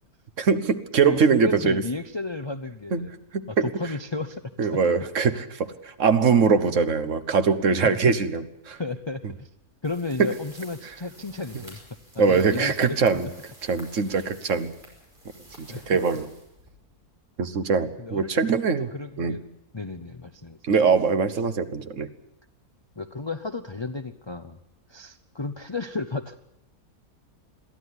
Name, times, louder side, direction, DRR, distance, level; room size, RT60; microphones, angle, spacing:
voice 1, 0.4-1.8 2.9-3.1 3.3-3.7 4.6-8.8 10.2-10.3 12.2-13.3 13.6-14.7 15.6-16.3 17.4-18.9 19.2-19.4 20.6-22.1, right 5 dB, 60° right, 11 dB, 1.5 m, -22 dB
voice 2, 1.0-3.1 3.5-4.7 7.8-8.2 8.8-9.5 9.8-11.8 12.1-13.3 15.7-15.8 18.0-19.4 19.7-20.6 23.0-24.6 24.9-26.4, left 3 dB, 25° left, 10 dB, 0.6 m, -33 dB
sound 1, 9.8-17.0, equal, 35° right, 5.9 m, -50 dB
22.5 x 14.0 x 9.8 m, 0.84 s
omnidirectional pair, 1.6 m